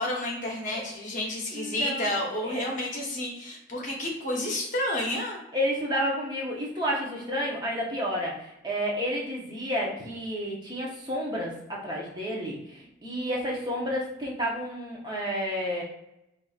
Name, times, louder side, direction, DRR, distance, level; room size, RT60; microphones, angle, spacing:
voice 1, 0.0-5.4, left 1 dB, 45° left, -1 dB, 0.9 m, -30 dB
voice 2, 1.5-2.1 2.4-2.6 5.5-15.8, equal, 20° right, -3 dB, 0.7 m, -31 dB
4.7 x 2.6 x 2.4 m, 0.86 s
head